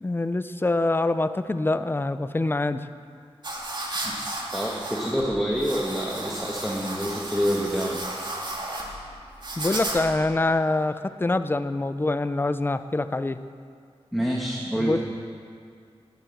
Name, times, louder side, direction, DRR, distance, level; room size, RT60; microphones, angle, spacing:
voice 1, 0.0-2.9 9.6-13.4 14.8-15.0, left 2 dB, 20° left, 12 dB, 0.5 m, -25 dB
sound 1, 3.4-10.3, right 1 dB, 45° right, 2.5 m, -34 dB
voice 2, 4.5-8.0 14.1-15.0, equal, ahead, -3 dB, 1.4 m, -27 dB
20.5 x 7.7 x 6.5 m, 2.3 s
wide cardioid pair, 110°, 11 cm